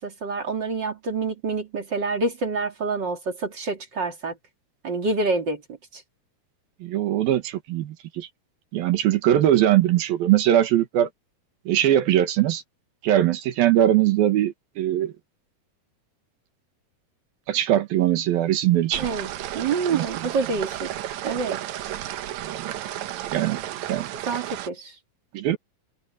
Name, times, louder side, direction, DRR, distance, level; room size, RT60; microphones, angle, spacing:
voice 1, 0.0-4.4 4.8-5.6 5.9-6.0 19.0-20.9 21.2-21.6 24.3-24.9, right 3 dB, 35° right, 2.7 m, -27 dB
voice 2, 6.8-8.3 8.7-11.1 11.7-12.6 13.0-15.1 17.5-19.1 19.9-20.1 22.4-22.7 23.3-23.6 23.9-24.1 25.3-25.6, right 12 dB, 85° right, 3.4 m, -21 dB
sound 1, 18.9-24.7, right 12 dB, 70° right, 1.9 m, -33 dB
omnidirectional pair, 4.1 m